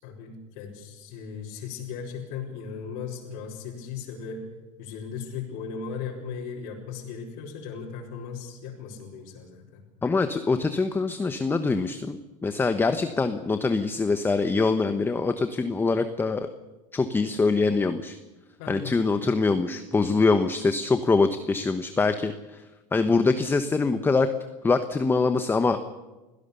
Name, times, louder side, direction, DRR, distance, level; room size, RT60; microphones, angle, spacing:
voice 1, 0.0-4.4 4.8-9.8 18.6-19.0, left 6 dB, 65° left, -3 dB, 4.8 m, -37 dB
voice 2, 10.0-16.5 16.9-18.2 18.7-22.6 22.9-24.3 24.6-25.8, left 4 dB, 15° left, 9 dB, 1.0 m, -24 dB
24.5 x 17.0 x 7.0 m, 1.1 s
supercardioid pair, 130°, 16 cm